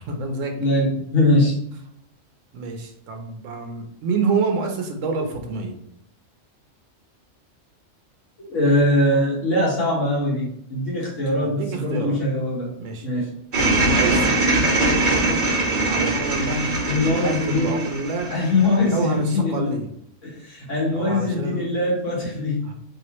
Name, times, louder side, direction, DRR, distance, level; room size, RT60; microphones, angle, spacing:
voice 1, 0.1-0.6 2.5-5.8 11.4-12.2 12.8-13.1 13.6-15.5 15.9-18.3 18.8-19.9 20.9-21.7 22.6-22.7, right 3 dB, 75° right, 4 dB, 1.1 m, -28 dB
voice 2, 0.6-1.6 8.4-12.7 13.0-13.3 16.9-17.8 18.3-19.7 20.2-22.7, left 1 dB, 70° left, -6 dB, 1.8 m, -22 dB
sound 1, 13.5-18.9, right 2 dB, 40° right, 1.0 m, -22 dB
3.4 x 2.9 x 3.0 m, 0.72 s
omnidirectional pair, 1.3 m